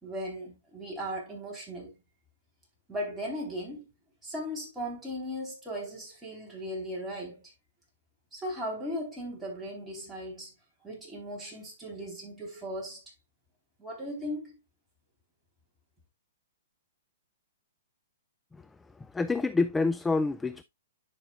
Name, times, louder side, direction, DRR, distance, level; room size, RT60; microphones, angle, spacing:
voice 1, 0.0-2.0 2.9-3.9 4.2-7.4 8.3-10.5 10.8-13.0 13.8-14.6, equal, 10° right, 3.7 m, -37 dB
voice 2, 19.0-20.6, left 3 dB, 10° left, 0.3 m, -27 dB
10.5 x 5.6 x 2.4 m
hypercardioid pair, 130°, 0 cm